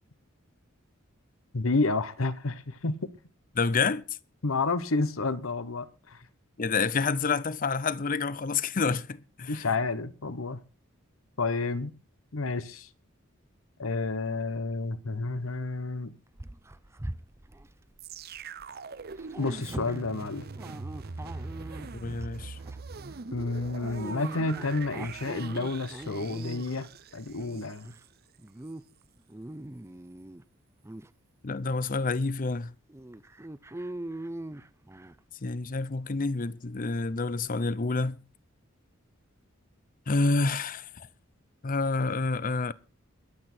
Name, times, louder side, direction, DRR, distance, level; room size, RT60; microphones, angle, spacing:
voice 1, 1.5-3.1 4.4-6.2 9.5-10.6 11.4-11.9 12.3-12.9 13.8-16.1 19.4-20.5 23.3-27.9, left 3 dB, 80° left, 1.0 m, -30 dB
voice 2, 3.5-4.0 6.6-9.7 21.9-22.6 31.4-32.7 35.4-38.2 40.1-41.1 41.6-42.7, left 4 dB, 40° left, 0.6 m, -28 dB
Dog, 16.3-18.7 18.9-22.3 22.7-22.9 23.7-26.8 27.3-28.0 28.4-28.8 29.2-30.4 30.8-31.1 31.7-31.8 32.2-32.3 32.9-35.2, right 1 dB, 15° right, 0.6 m, -42 dB
sound 1, 18.0-28.1 28.7-28.8, right 4 dB, 50° right, 0.7 m, -42 dB
21.5 x 8.4 x 4.4 m
head